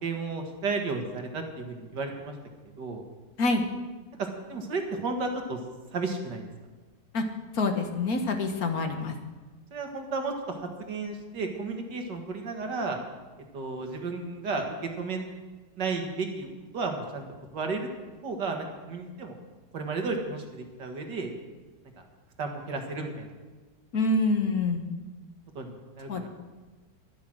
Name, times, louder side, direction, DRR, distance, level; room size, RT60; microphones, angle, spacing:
voice 1, 0.0-2.3 2.8-3.0 4.5-5.6 5.9-6.4 9.7-13.0 13.5-14.7 15.0-15.3 15.8-16.5 16.7-17.2 17.5-17.9 18.2-19.3 19.7-21.3 22.4-23.3 25.6-26.3, right 3 dB, 85° right, 3 dB, 2.4 m, -33 dB
voice 2, 7.5-9.1 23.9-24.8 26.1-26.2, left 3 dB, 60° left, 5 dB, 1.7 m, -26 dB
12.5 x 11.5 x 6.2 m, 1.3 s
omnidirectional pair, 1.8 m